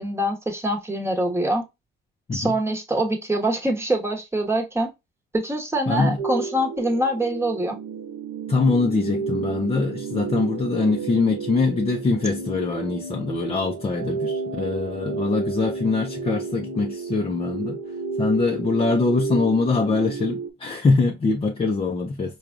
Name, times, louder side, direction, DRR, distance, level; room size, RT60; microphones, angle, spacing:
voice 1, 0.0-1.6 2.3-4.9 5.3-7.8, right 1 dB, 15° right, 1.0 m, -24 dB
voice 2, 5.9-6.2 8.5-17.8 18.2-22.4, left 3 dB, 30° left, 0.6 m, -23 dB
sound 1, 6.2-20.5, right 5 dB, 80° right, 0.8 m, -31 dB
4.7 x 2.4 x 2.5 m
cardioid pair, 90°, 20 cm